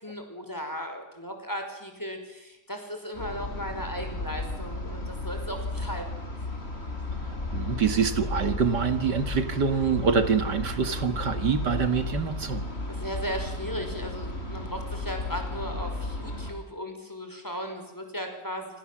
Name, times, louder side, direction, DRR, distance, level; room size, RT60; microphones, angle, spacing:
voice 1, 0.0-6.2 12.9-18.8, equal, 10° left, 5 dB, 5.3 m, -36 dB
sound 1, 3.1-16.5, left 2 dB, 40° left, 5.2 m, -34 dB
voice 2, 7.5-12.6, right 6 dB, 85° right, 8 dB, 2.5 m, -25 dB
28.0 x 26.5 x 7.6 m, 0.93 s
omnidirectional pair, 1.8 m